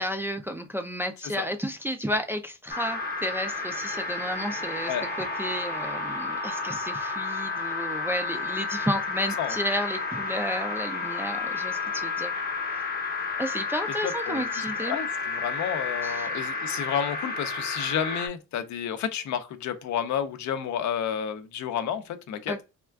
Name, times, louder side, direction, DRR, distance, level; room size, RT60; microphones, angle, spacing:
voice 1, 0.0-12.3 13.4-15.0 16.0-16.3 22.5-22.6, equal, 10° right, 0.3 m, -32 dB
sound 1, 2.7-18.3, left 4 dB, 30° left, 0.8 m, -31 dB
voice 2, 14.0-22.5, left 8 dB, 70° left, 0.6 m, -31 dB
3.5 x 2.3 x 2.2 m
cardioid pair, 90°, 30 cm